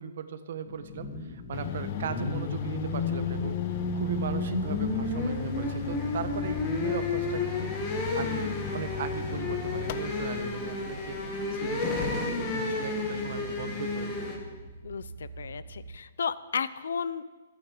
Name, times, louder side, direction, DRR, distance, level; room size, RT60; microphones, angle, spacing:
voice 1, 0.0-11.2 11.5-14.1, right 7 dB, 55° right, 10 dB, 1.3 m, -38 dB
sound 1, 0.7-14.4, left 3 dB, 20° left, 2.2 m, -32 dB
sound 2, 1.5-10.4, left 12 dB, 35° left, 0.6 m, -38 dB
sound 3, 3.1-16.0, right 2 dB, 10° right, 2.8 m, -46 dB
voice 2, 14.8-17.2, left 6 dB, 80° left, 16 dB, 0.8 m, -33 dB
26.5 x 9.2 x 5.1 m, 1.3 s
hypercardioid pair, 170°, 0 cm